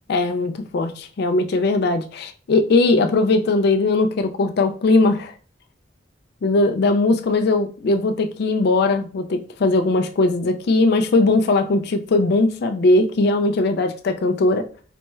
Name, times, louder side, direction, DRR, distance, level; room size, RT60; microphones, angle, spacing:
voice 1, 0.1-5.3 6.4-14.7, left 2 dB, 60° left, 0.4 m, -19 dB
4.1 x 3.1 x 2.2 m
head